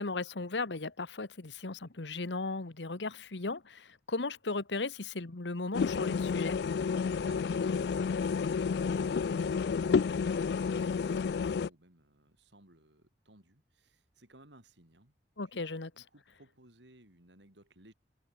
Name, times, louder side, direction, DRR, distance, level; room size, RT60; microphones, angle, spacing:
voice 1, 0.0-6.6 15.4-15.9, left 3 dB, 85° left, 1.3 m, -36 dB
sound 1, 5.7-11.7, left 5 dB, 65° left, 0.4 m, -30 dB
voice 2, 7.2-15.1 15.5-15.6 16.0-17.9, right 1 dB, 85° right, 6.7 m, -59 dB
head